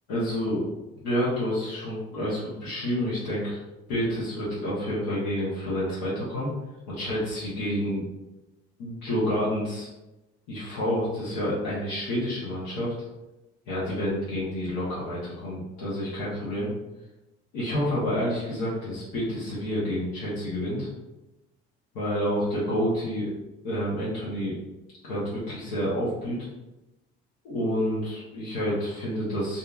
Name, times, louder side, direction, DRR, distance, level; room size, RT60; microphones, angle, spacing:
voice 1, 0.1-0.6 1.0-3.6 3.9-6.5 6.9-8.1 8.8-9.9 10.5-12.9 13.7-16.7 17.5-20.9 21.9-23.4 23.6-24.6 25.1-26.4 27.4-29.6, equal, 80° left, -9 dB, 0.9 m, -29 dB
2.7 x 2.4 x 2.3 m, 1.0 s
hypercardioid pair, 60°, 30 cm